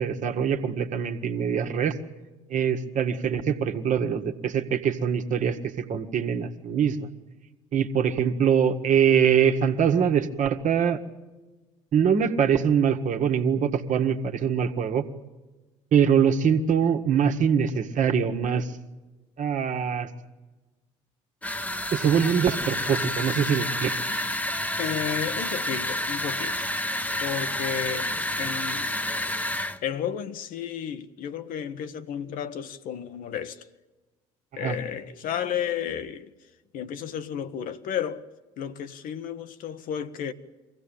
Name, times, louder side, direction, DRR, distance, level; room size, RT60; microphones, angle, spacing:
voice 1, 0.0-1.9 2.5-7.1 7.7-11.0 11.9-15.1 15.9-18.7 19.4-20.1 21.9-23.9 34.6-34.8, right 7 dB, 50° right, 1.7 m, -23 dB
sound 1, 21.4-29.8, left 1 dB, 10° left, 1.1 m, -29 dB
voice 2, 24.8-26.7 27.2-28.9 29.8-33.7 34.5-36.3 36.7-38.3 38.6-40.3, left 8 dB, 55° left, 1.1 m, -32 dB
23.5 x 16.0 x 8.8 m
hypercardioid pair, 55°, 17 cm